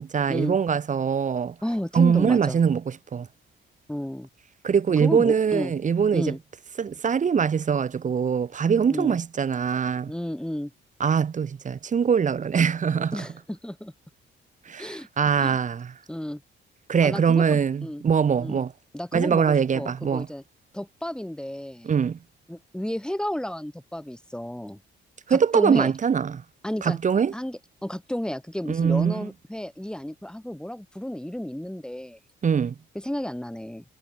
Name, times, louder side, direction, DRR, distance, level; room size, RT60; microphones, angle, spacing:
voice 1, 0.0-1.6 1.9-3.3 4.6-6.3 6.8-10.1 11.0-13.2 14.7-15.9 16.9-18.7 19.1-20.3 21.8-22.2 25.3-26.4 26.8-27.3 28.7-29.3 32.4-32.7, right 6 dB, 40° right, 1.1 m, -23 dB
voice 2, 1.6-2.6 3.9-4.3 5.0-5.7 6.1-6.4 8.9-9.2 10.1-10.7 13.1-13.9 14.8-15.1 15.4-15.6 16.1-16.4 17.0-18.0 18.4-18.6 18.9-20.4 20.7-21.9 22.5-24.8 25.3-25.9 26.6-27.0 27.3-32.2 32.9-33.8, left 1 dB, 5° left, 8.0 m, -32 dB
cardioid pair, 90°, 20 cm